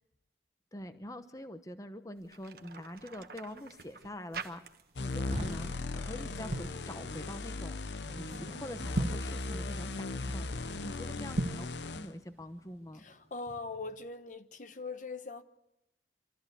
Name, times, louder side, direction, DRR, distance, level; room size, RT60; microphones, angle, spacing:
voice 1, 0.7-4.6 5.0-7.8 8.2-11.7 11.9-13.1, left 1 dB, 20° left, 1.0 m, -45 dB
sound 1, 2.2-5.1 5.4-5.7 6.3-6.8 8.8-9.3 11.2-11.7, right 2 dB, 55° right, 1.4 m, -38 dB
sound 2, 5.0-12.1, left 3 dB, 85° left, 0.8 m, -38 dB
Rain, 5.0-14.1, right 1 dB, 35° right, 1.3 m, -50 dB
voice 2, 10.8-11.3 12.9-15.4, left 3 dB, 45° left, 1.0 m, -42 dB
26.0 x 14.0 x 8.3 m
head